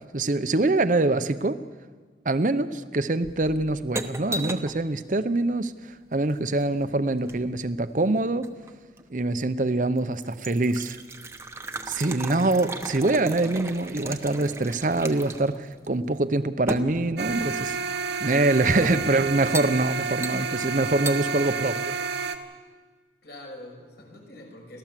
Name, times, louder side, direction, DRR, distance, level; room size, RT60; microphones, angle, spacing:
voice 1, 0.0-1.6 2.2-5.7 6.1-8.5 9.1-11.0 11.9-17.8 18.2-22.0, right 2 dB, 45° right, 12 dB, 0.7 m, -24 dB
sound 1, 3.2-4.8 6.2-7.6 8.4-9.1 9.6-9.7 10.0-15.6 15.8-15.9 16.7-17.7 18.5-19.1 19.5-19.8 20.2-20.7 21.0-21.2, right 2 dB, 15° right, 0.9 m, -36 dB
sound 2, 17.2-22.4, right 5 dB, 70° right, 1.4 m, -30 dB
voice 2, 18.6-19.2 23.2-24.8, left 2 dB, 65° left, 1 dB, 6.2 m, -43 dB
30.0 x 13.5 x 7.5 m, 1.5 s
head